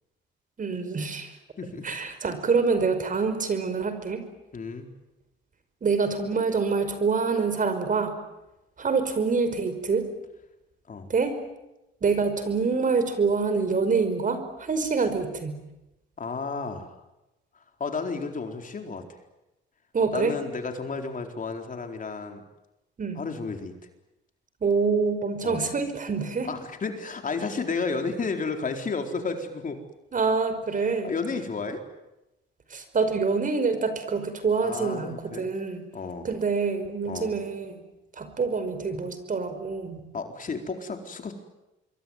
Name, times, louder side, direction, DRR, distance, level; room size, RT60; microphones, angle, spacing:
voice 1, 0.6-1.3 1.8-4.2 5.8-8.2 8.8-10.1 11.1-11.4 12.0-15.6 19.9-20.3 23.0-23.2 24.6-26.5 30.1-31.1 32.7-35.8 36.2-37.8 38.1-40.0, right 4 dB, 40° right, 10 dB, 5.3 m, -26 dB
voice 2, 4.5-4.9 10.9-11.1 16.2-17.0 17.5-19.2 20.1-22.4 23.2-23.7 25.4-25.7 26.4-29.8 31.0-31.8 34.6-35.5 35.9-36.3 37.1-37.4 40.1-41.3, left 4 dB, 40° left, 5 dB, 4.3 m, -32 dB
26.0 x 23.0 x 9.5 m, 0.95 s
cardioid pair, 90°, 20 cm